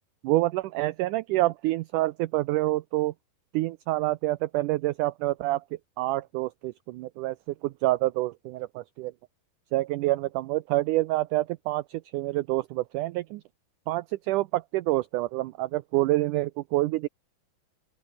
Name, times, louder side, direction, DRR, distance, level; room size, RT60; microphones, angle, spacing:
voice 1, 0.2-3.1 3.5-5.6 6.0-7.4 7.6-9.1 9.7-13.4 13.9-17.1, right 18 dB, 80° right, 1.8 m, -27 dB
open air
omnidirectional pair, 4.3 m